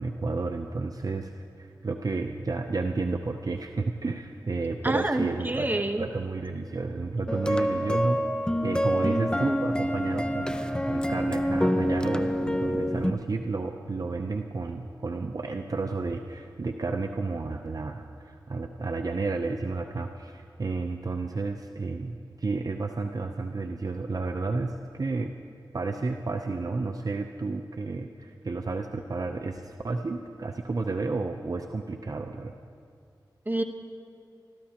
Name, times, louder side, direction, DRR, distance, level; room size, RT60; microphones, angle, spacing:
voice 1, 0.0-8.2 8.6-10.6 10.9-25.3 25.7-32.5, right 3 dB, 50° right, 5 dB, 0.6 m, -31 dB
voice 2, 4.8-6.0 33.5-33.6, right 1 dB, 25° right, 6 dB, 1.1 m, -27 dB
sound 1, 7.3-13.1, equal, 10° left, 0.7 m, -27 dB
24.5 x 13.5 x 2.9 m, 2.4 s
cardioid pair, 45°, 8 cm